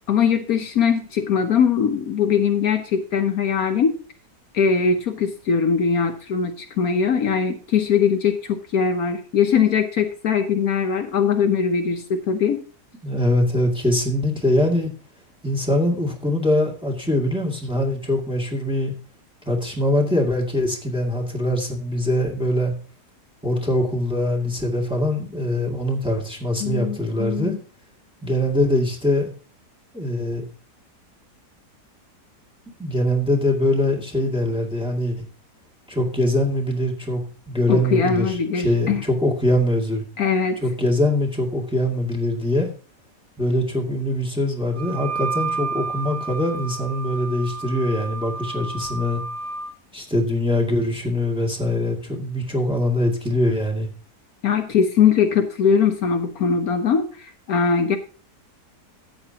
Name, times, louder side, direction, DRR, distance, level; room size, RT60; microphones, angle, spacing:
voice 1, 0.1-3.9 4.5-12.6 26.6-27.6 37.7-39.0 40.2-40.6 54.4-58.0, left 6 dB, 65° left, 6 dB, 1.3 m, -21 dB
voice 2, 13.0-14.9 15.4-18.9 19.5-22.7 23.4-27.6 28.2-29.3 29.9-30.4 32.8-35.2 35.9-37.2 37.5-40.0 40.6-42.7 43.4-49.2 49.9-53.9, left 1 dB, 5° right, 0 dB, 2.1 m, -23 dB
Wind instrument woodwind instrument, 44.7-49.7, right 4 dB, 45° right, 0.4 m, -31 dB
13.0 x 8.7 x 2.9 m, 0.37 s
omnidirectional pair, 1.8 m